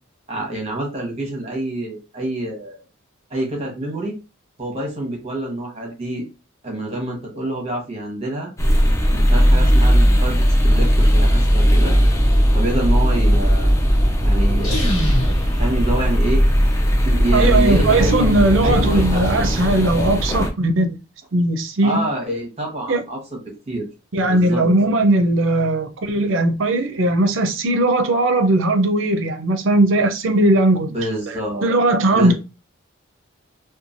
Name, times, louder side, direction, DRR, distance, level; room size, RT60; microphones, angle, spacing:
voice 1, 0.3-2.8 3.3-4.2 4.6-6.3 6.6-8.5 9.1-12.0 12.5-13.7 14.2-14.9 15.6-16.4 17.0-19.5 21.8-23.4 23.7-23.8 24.3-24.6 30.9-31.7 32.1-32.3, right 1 dB, 30° right, 0.9 m, -26 dB
sound 1, 8.6-20.5, equal, 15° left, 0.3 m, -17 dB
sound 2, 14.5-16.7, equal, 85° left, 1.0 m, -26 dB
voice 2, 17.3-21.0 21.3-22.1 22.9-23.0 24.1-30.9 31.3-32.3, right 2 dB, 60° right, 0.5 m, -18 dB
3.0 x 2.2 x 2.5 m
head